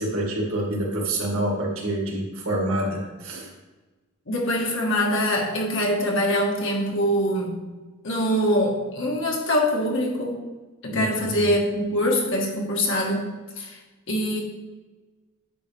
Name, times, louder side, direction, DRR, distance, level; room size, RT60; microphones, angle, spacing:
voice 1, 0.0-3.5 10.9-11.6, right 1 dB, 75° right, -2 dB, 2.2 m, -27 dB
voice 2, 4.3-7.6 8.0-10.4 10.8-13.3 13.6-13.8 14.1-14.4, equal, 60° left, -1 dB, 1.6 m, -24 dB
9.4 x 5.7 x 3.4 m, 1.2 s
head